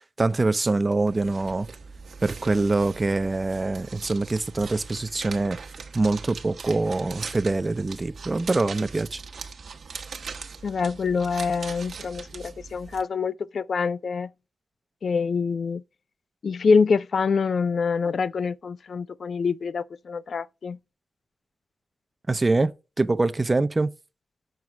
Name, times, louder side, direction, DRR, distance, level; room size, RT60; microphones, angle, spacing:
voice 1, 0.2-1.7 2.2-5.6 5.9-9.2 22.3-23.9, right 3 dB, 30° right, 0.6 m, -24 dB
sound 1, 0.9-13.0, right 5 dB, 75° right, 1.1 m, -40 dB
voice 2, 10.6-14.3 15.0-15.8 16.4-20.8, left 5 dB, 70° left, 0.4 m, -25 dB
7.9 x 4.6 x 7.1 m
cardioid pair, 75°, 0 cm